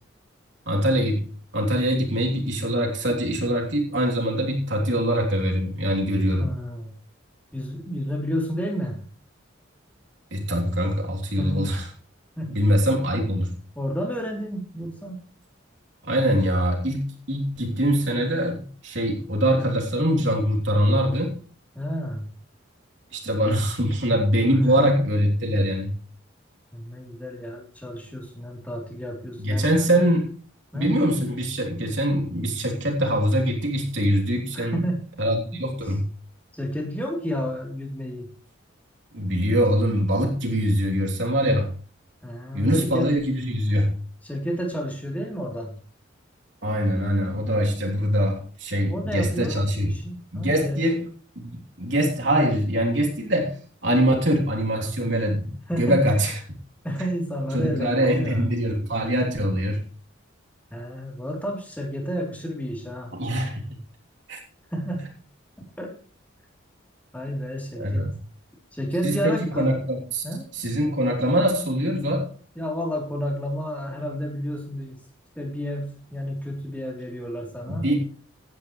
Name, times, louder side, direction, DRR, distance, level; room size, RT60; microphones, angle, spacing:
voice 1, 0.7-1.2 1.5-6.4 10.3-11.8 12.5-13.5 16.0-21.3 23.1-25.9 29.4-30.3 30.7-34.8 35.2-36.0 39.1-41.7 42.5-43.9 46.6-49.9 50.3-51.0 51.3-51.5 51.8-53.5 53.8-55.5 55.8-56.3 57.5-59.8 63.1-63.6 64.3-64.4 67.8-68.1 69.0-70.2 70.6-72.3 77.7-78.0, equal, 65° right, -1 dB, 3.4 m, -23 dB
voice 2, 6.4-6.9 7.5-9.0 11.4-11.7 12.3-12.6 13.7-15.2 21.7-22.3 24.6-25.1 26.7-30.0 30.7-30.9 34.5-35.0 36.5-38.3 42.2-43.1 44.2-45.7 48.9-50.8 55.7-56.2 56.8-58.4 60.7-63.1 64.7-65.1 65.8-65.9 67.1-68.1 68.7-69.7 70.2-70.5 72.5-75.0 75.3-77.9, equal, 10° left, 0 dB, 3.5 m, -31 dB
16.5 x 10.5 x 3.3 m, 0.43 s
head